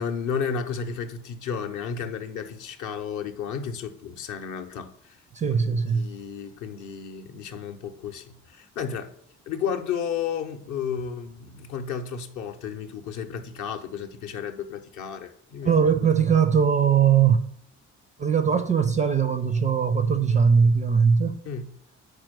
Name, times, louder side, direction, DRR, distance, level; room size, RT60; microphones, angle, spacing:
voice 1, 0.0-5.2 5.6-9.1 9.5-15.8 21.5-21.7, left 7 dB, 50° left, 0.7 m, -32 dB
voice 2, 5.3-6.1 15.6-17.4 18.2-21.4, right 6 dB, 20° right, 0.4 m, -20 dB
4.8 x 4.4 x 5.9 m
figure-of-eight pair, 45°, 38 cm